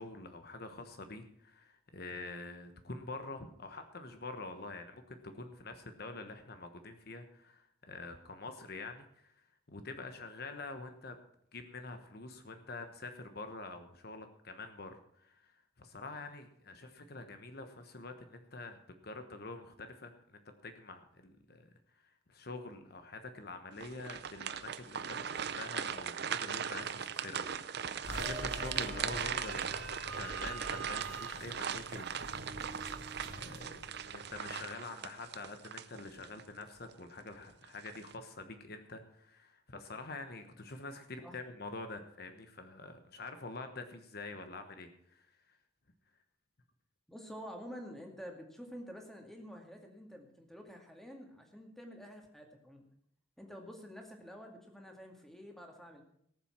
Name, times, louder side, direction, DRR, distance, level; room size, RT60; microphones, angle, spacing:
voice 1, 0.0-9.3 9.7-11.2 11.5-21.7 22.0-27.4 27.7-45.6, left 3 dB, 55° left, 7 dB, 1.2 m, -46 dB
sound 1, 23.8-36.4 36.9-37.0 37.6-38.1, right 7 dB, 55° right, 0.6 m, -39 dB
sound 2, 28.0-34.6, right 2 dB, 90° right, 3.0 m, -45 dB
voice 2, 47.1-52.8 53.4-56.0, equal, ahead, 2 dB, 2.2 m, -49 dB
18.5 x 7.4 x 6.0 m, 0.70 s
head